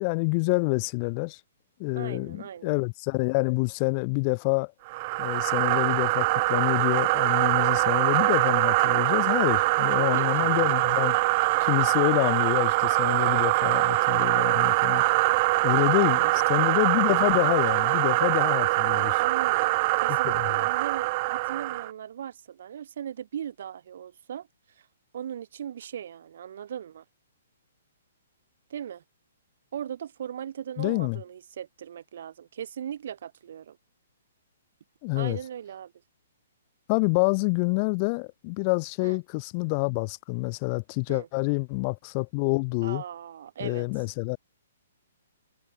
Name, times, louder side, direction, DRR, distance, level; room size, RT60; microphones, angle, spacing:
voice 1, 0.0-1.4 1.8-4.7 5.2-11.2 11.6-15.0 15.6-19.2 20.1-20.5 30.8-31.2 35.0-35.4 36.9-43.0 43.6-44.4, left 33 dB, 35° left, 5.3 m, -27 dB
voice 2, 2.0-2.8 9.8-10.3 15.8-16.4 19.2-24.9 25.1-27.0 28.7-29.0 29.7-33.8 35.1-35.9 39.0-39.2 41.1-41.3 42.8-43.9, right 9 dB, 60° right, 4.6 m, -38 dB
sound 1, 4.9-21.9, right 23 dB, 40° right, 1.7 m, -23 dB
hypercardioid pair, 140°, 0 cm